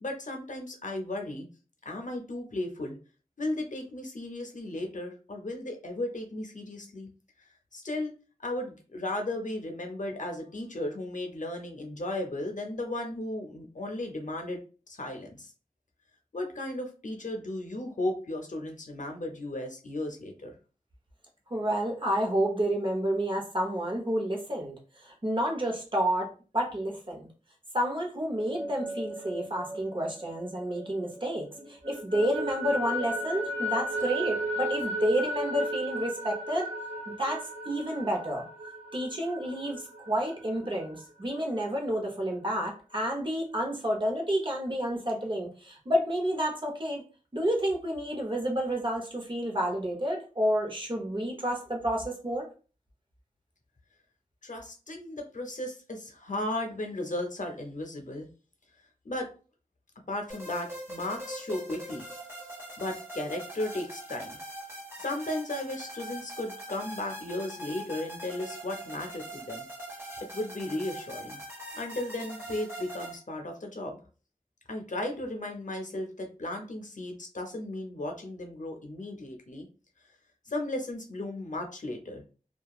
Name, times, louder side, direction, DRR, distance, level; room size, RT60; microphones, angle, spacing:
voice 1, 0.0-1.5 1.8-3.0 3.4-7.1 7.7-8.1 8.4-14.6 14.9-15.5 16.3-20.5 54.4-58.3 59.0-59.3 60.1-62.0 62.8-64.4 65.0-69.6 70.3-71.4 71.7-74.0 74.7-79.7 80.5-82.2, left 1 dB, 65° left, 3 dB, 0.6 m, -35 dB
voice 2, 21.5-27.3 27.7-36.7 37.2-38.4 38.9-47.0 47.3-52.5, equal, 35° right, 0 dB, 0.8 m, -30 dB
sound 1, 28.4-31.2 31.6-41.0, right 1 dB, 60° right, 1.1 m, -35 dB
sound 2, 60.3-73.2, right 1 dB, 20° right, 1.5 m, -42 dB
2.8 x 2.3 x 2.3 m, 0.36 s
wide cardioid pair, 50°, 14 cm